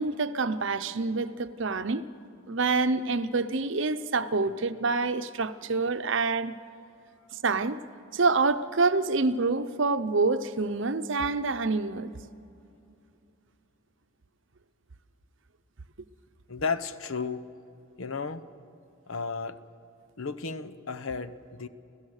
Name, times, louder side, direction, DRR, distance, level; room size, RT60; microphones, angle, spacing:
voice 1, 0.0-2.0 2.5-6.5 7.4-7.8 8.1-12.1, right 3 dB, 60° right, 0.7 m, -27 dB
voice 2, 16.5-17.4 18.0-18.4 19.1-19.6 20.2-21.7, left 4 dB, 75° left, 0.9 m, -33 dB
29.0 x 15.5 x 6.5 m
head